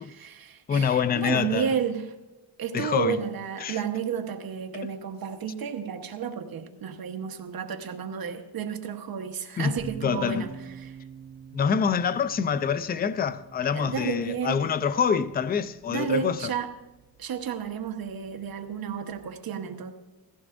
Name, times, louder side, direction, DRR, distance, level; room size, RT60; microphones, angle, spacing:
voice 1, 0.0-2.1 2.6-10.5 10.8-11.0 13.7-14.7 15.9-16.7 17.2-19.9, right 7 dB, 50° right, 1.2 m, -32 dB
voice 2, 0.7-1.7 2.7-3.2 3.6-3.8 9.6-9.7 10.0-10.5 11.5-16.5, left 7 dB, 25° left, 0.3 m, -26 dB
sound 1, 9.8-19.2, right 5 dB, 5° right, 5.1 m, -47 dB
17.5 x 15.0 x 2.6 m
cardioid pair, 125°, 45 cm